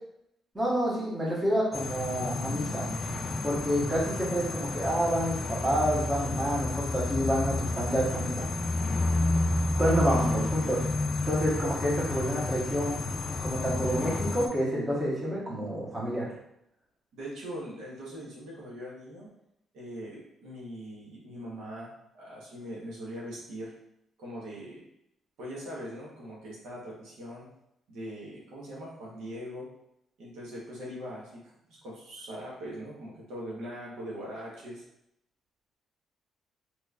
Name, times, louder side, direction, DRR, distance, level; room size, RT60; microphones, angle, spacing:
voice 1, 0.5-2.9 3.4-8.5 9.8-10.8 11.2-13.0 13.4-16.3, equal, 20° right, -6 dB, 1.2 m, -28 dB
sound 1, 1.7-14.5, left 2 dB, 40° left, 0.4 m, -30 dB
voice 2, 17.1-19.3 19.7-23.7 24.2-24.8 25.4-27.5 27.9-29.7 30.2-31.4 31.8-34.8, equal, 85° right, -5 dB, 1.1 m, -41 dB
3.2 x 3.1 x 2.4 m, 0.79 s
cardioid pair, 90°, 0 cm